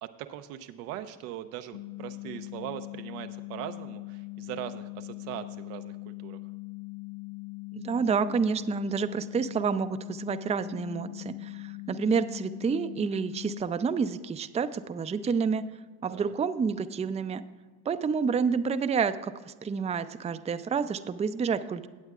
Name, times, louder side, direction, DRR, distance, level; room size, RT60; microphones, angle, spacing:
voice 1, 0.0-6.4 16.1-16.3, right 12 dB, 85° right, 9 dB, 0.7 m, -40 dB
sound 1, 1.7-13.6, left 26 dB, 50° left, 0.8 m, -41 dB
voice 2, 7.7-15.6 16.0-17.4 17.9-21.9, right 6 dB, 15° right, 11 dB, 0.4 m, -29 dB
17.5 x 8.0 x 2.4 m, 1.4 s
hypercardioid pair, 60°, 45 cm